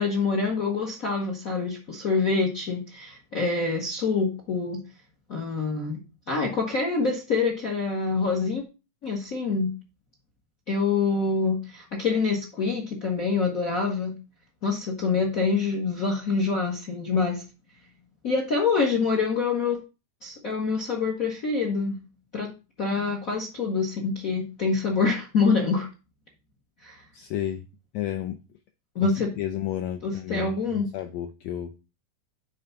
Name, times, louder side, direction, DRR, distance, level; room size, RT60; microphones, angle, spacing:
voice 1, 0.0-4.8 5.3-6.0 6.3-8.6 9.0-9.7 10.7-14.1 14.6-17.4 18.2-19.8 20.2-22.0 22.3-22.5 22.8-25.9 26.8-27.0 28.9-29.3 30.0-30.9, left 4 dB, 65° left, 1 dB, 0.8 m, -26 dB
voice 2, 27.1-27.7 27.9-28.4 29.0-31.7, left 11 dB, 90° left, 7 dB, 1.5 m, -32 dB
9.4 x 3.5 x 5.6 m, 0.30 s
omnidirectional pair, 3.7 m